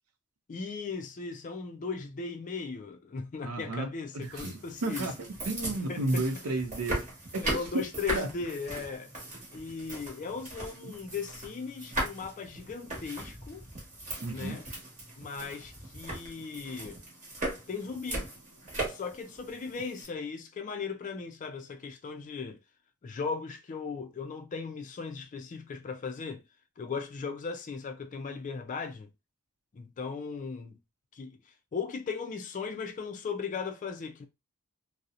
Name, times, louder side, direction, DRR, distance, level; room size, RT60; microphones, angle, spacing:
voice 1, 0.5-5.1 5.9-6.2 6.9-7.0 7.4-9.1 9.5-13.6 14.3-14.7 15.2-17.0 17.7-18.3 18.9-22.6 23.0-26.4 26.8-29.1 29.7-30.8 31.1-31.4 31.7-34.3, left 5 dB, 35° left, 0.3 m, -37 dB
voice 2, 3.4-3.9 4.1-7.0 7.3-7.4 8.1-8.3 10.8-10.9 14.2-14.6, right 2 dB, 80° right, 0.5 m, -32 dB
sound 1, 4.2-20.0, right 1 dB, 35° right, 1.1 m, -39 dB
2.7 x 2.0 x 2.4 m
head